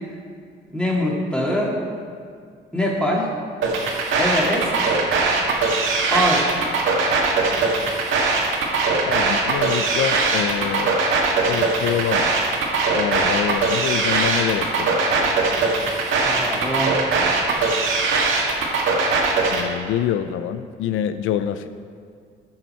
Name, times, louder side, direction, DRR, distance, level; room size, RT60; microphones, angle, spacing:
voice 1, 0.7-1.8 2.7-3.3 4.2-5.0 6.1-6.5 16.2-17.7, equal, 5° left, -3 dB, 2.3 m, -23 dB
sound 1, 3.6-19.6, right 4 dB, 85° right, 1.8 m, -20 dB
voice 2, 9.1-10.9 11.5-12.3 13.0-15.3 19.5-21.7, left 10 dB, 85° left, 10 dB, 0.4 m, -26 dB
15.5 x 5.6 x 4.4 m, 2.2 s
cardioid pair, 90°, 20 cm